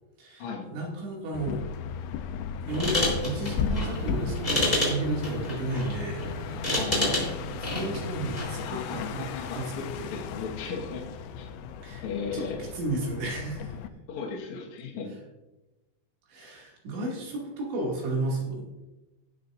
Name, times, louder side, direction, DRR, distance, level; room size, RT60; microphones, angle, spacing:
voice 1, 0.2-1.7 2.7-6.6 7.6-9.3 9.5-10.1 11.8-12.0 12.3-13.8 16.3-18.6, right 2 dB, 70° right, -3 dB, 4.6 m, -33 dB
sound 1, 1.3-13.9, left 6 dB, 85° left, 2.8 m, -36 dB
sound 2, 2.7-8.6, left 1 dB, 10° left, 3.0 m, -30 dB
voice 2, 6.7-7.5 8.6-11.1 11.4-11.5 12.0-12.7 14.1-15.1, left 5 dB, 60° left, -2 dB, 2.0 m, -36 dB
18.0 x 8.1 x 2.6 m, 1.1 s
omnidirectional pair, 5.5 m